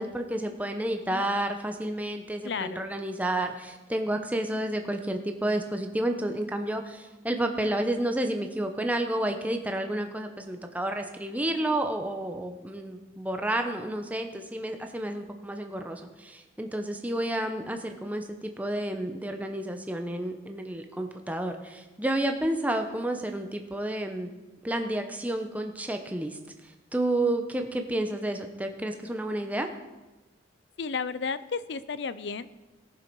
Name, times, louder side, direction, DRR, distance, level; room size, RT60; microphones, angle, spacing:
voice 1, 0.0-24.3 24.6-26.4 26.9-29.7, right 1 dB, 10° right, 5 dB, 0.8 m, -30 dB
voice 2, 2.4-2.8 30.8-32.5, left 5 dB, 70° left, 15 dB, 0.5 m, -33 dB
18.5 x 6.8 x 4.6 m, 1.1 s
head